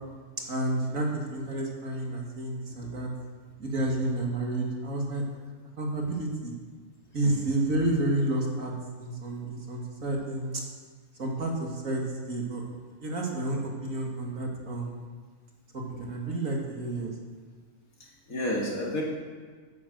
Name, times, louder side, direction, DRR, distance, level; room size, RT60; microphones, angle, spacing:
voice 1, 0.5-3.1 3.6-5.2 5.8-6.5 7.1-8.7 9.0-10.6 11.2-12.6 13.0-15.0 15.7-17.1, right 2 dB, 60° right, -1 dB, 2.6 m, -30 dB
voice 2, 18.0-19.0, left 1 dB, 65° left, -3 dB, 3.2 m, -31 dB
10.5 x 10.0 x 8.0 m, 1.5 s
omnidirectional pair, 1.6 m